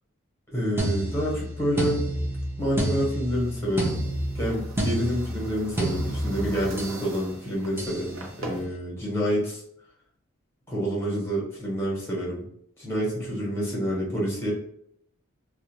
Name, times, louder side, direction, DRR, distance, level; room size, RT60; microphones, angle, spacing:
voice 1, 0.5-2.0 2.6-4.0 4.3-9.6 10.7-12.4 12.8-14.5, equal, 10° left, -5 dB, 1.0 m, -28 dB
sound 1, 0.8-7.1 7.8-8.1, right 1 dB, 10° right, 0.5 m, -30 dB
sound 2, 3.3-8.6, right 1 dB, 80° right, 0.7 m, -43 dB
2.4 x 2.1 x 2.9 m, 0.68 s
head